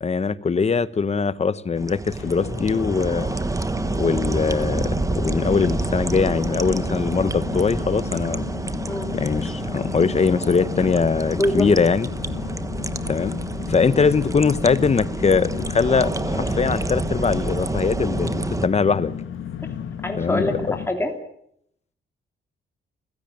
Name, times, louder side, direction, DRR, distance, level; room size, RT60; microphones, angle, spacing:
voice 1, 0.0-3.3 3.9-8.4 9.1-12.1 13.1-13.4 13.7-19.1 20.2-20.7, left 5 dB, 30° left, 1.0 m, -22 dB
sound 1, 1.8-18.7, right 2 dB, 15° right, 1.1 m, -28 dB
sound 2, 2.2-20.9, left 8 dB, 75° left, 1.9 m, -34 dB
voice 2, 11.3-11.7 20.0-21.1, left 1 dB, 10° left, 3.0 m, -24 dB
29.5 x 16.0 x 9.2 m
wide cardioid pair, 135°, 21 cm